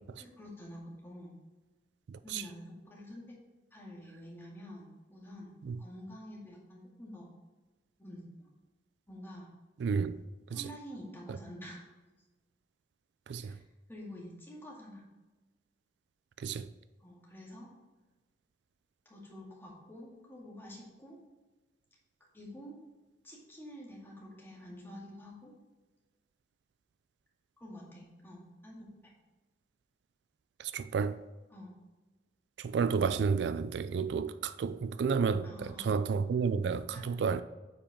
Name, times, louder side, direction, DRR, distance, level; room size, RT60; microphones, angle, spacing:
voice 1, 0.2-1.3 2.2-3.4 3.7-5.5 5.8-7.3 8.0-8.5 9.1-9.5 10.5-11.8 13.4-13.6 13.9-15.0 17.0-17.7 19.1-21.2 22.3-22.8 23.2-25.5 27.6-29.1 31.5-31.7 35.4-35.9 36.9-37.0, equal, 15° left, 2.1 m, -48 dB
voice 2, 9.8-10.2 10.5-10.6 11.3-11.4 13.3-13.5 16.4-16.7 30.6-31.2 32.6-37.4, right 5 dB, 70° right, 0.3 m, -31 dB
8.5 x 5.5 x 3.6 m
head